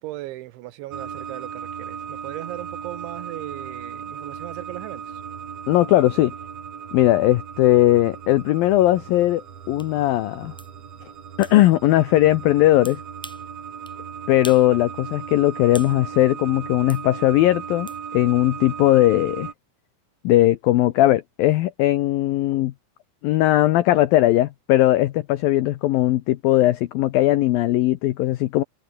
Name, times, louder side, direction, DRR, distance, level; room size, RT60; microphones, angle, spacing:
voice 1, 0.0-5.2, right 17 dB, 85° right, 3.4 m, -37 dB
sound 1, 0.9-19.5, right 7 dB, 45° right, 2.6 m, -37 dB
voice 2, 5.7-6.3 6.9-9.4 9.7-10.5 11.4-13.0 14.3-19.5 20.2-22.7 23.2-28.6, left 15 dB, 85° left, 2.0 m, -19 dB
sound 2, 9.8-9.9 10.6-10.7 11.4-11.6 12.8-13.5 13.9-14.0 14.4-14.7 15.0-16.0 16.9-17.0 17.9-18.0, equal, ahead, 1.9 m, -41 dB
omnidirectional pair, 5.3 m